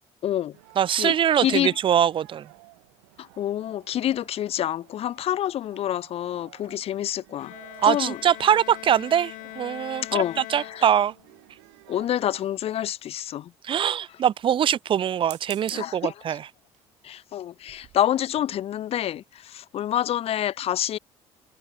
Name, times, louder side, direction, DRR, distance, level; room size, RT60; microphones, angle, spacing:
voice 1, 0.2-0.5 1.0-1.7 3.2-7.5 7.8-8.2 10.1-10.4 10.7-10.9 11.9-13.5 15.7-16.1 17.0-21.0, left 11 dB, 50° left, 0.5 m, -27 dB
sound 1, 0.5-12.5, right 30 dB, 90° right, 1.8 m, -54 dB
voice 2, 0.8-2.5 7.8-11.1 13.6-16.5, right 9 dB, 40° right, 0.5 m, -23 dB
Bowed string instrument, 7.4-11.4, left 22 dB, 75° left, 0.9 m, -41 dB
sound 2, 12.4-13.2 15.1-16.0 16.7-17.0 17.4-17.5 17.7-18.0, right 15 dB, 65° right, 2.7 m, -45 dB
supercardioid pair, 80°, 13 cm